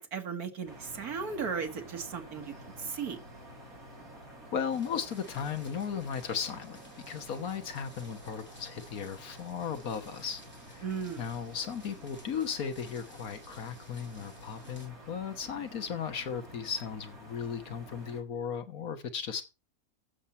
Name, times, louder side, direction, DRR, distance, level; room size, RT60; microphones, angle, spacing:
voice 1, 0.0-3.2 10.8-11.2, right 6 dB, 85° right, 2.1 m, -36 dB
sound 1, 0.7-18.2, right 1 dB, 70° right, 4.7 m, -50 dB
voice 2, 4.5-6.8 7.1-10.4 10.7-10.8 11.2-19.4, left 7 dB, 75° left, 1.7 m, -36 dB
sound 2, 4.7-14.9, equal, 5° left, 2.7 m, -57 dB
14.5 x 7.3 x 4.3 m
omnidirectional pair, 1.5 m